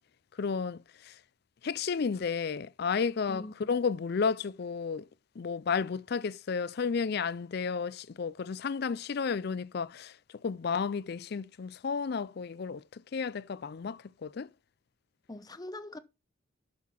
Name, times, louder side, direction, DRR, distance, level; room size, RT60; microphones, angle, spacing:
voice 1, 0.4-1.1 1.6-5.1 5.4-10.2 10.4-14.5, left 5 dB, 50° left, 0.4 m, -32 dB
voice 2, 3.3-3.7 15.3-16.0, left 1 dB, 20° left, 0.7 m, -43 dB
7.2 x 6.6 x 5.7 m
head